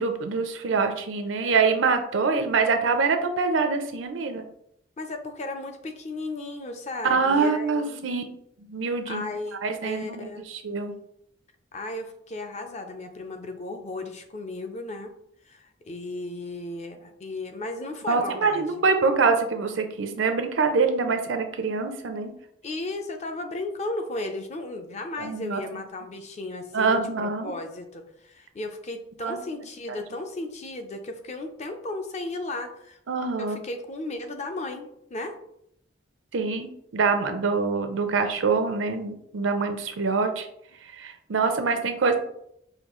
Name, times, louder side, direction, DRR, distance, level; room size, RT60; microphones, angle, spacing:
voice 1, 0.0-4.4 7.0-8.2 8.7-9.3 9.6-10.3 10.6-10.9 18.1-22.3 25.2-25.6 26.7-27.5 29.2-29.4 33.1-33.6 36.3-40.5 41.0-42.1, right 4 dB, 85° right, 7 dB, 0.5 m, -25 dB
voice 2, 5.0-8.2 9.1-10.4 11.7-15.1 15.5-18.9 22.6-33.0 33.4-35.4, left 2 dB, 35° left, 6 dB, 0.5 m, -35 dB
5.0 x 2.3 x 3.0 m, 0.74 s
head